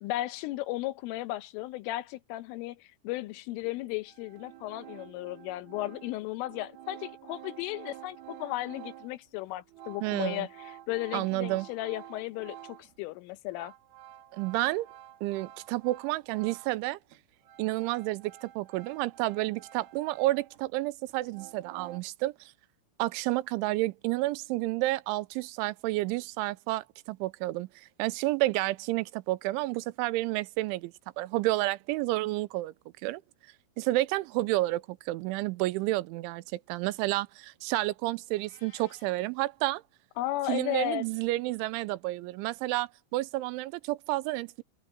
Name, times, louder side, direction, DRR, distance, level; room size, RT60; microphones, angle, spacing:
voice 1, 0.0-13.7 40.2-41.0, left 16 dB, 90° left, 3.5 m, -35 dB
sound 1, 3.6-3.7 4.1-13.0 13.3-16.9 17.1-20.7 21.1-22.0, right 11 dB, 60° right, 3.3 m, -50 dB
voice 2, 10.0-10.5 11.1-11.7 14.3-14.9 15.2-17.0 17.6-22.5 23.0-27.7 28.0-32.7 33.0-33.2 33.8-39.8 40.5-44.6, right 19 dB, 80° right, 3.0 m, -30 dB
Meow, 38.4-39.2, left 5 dB, 70° left, 8.2 m, -58 dB
omnidirectional pair, 5.6 m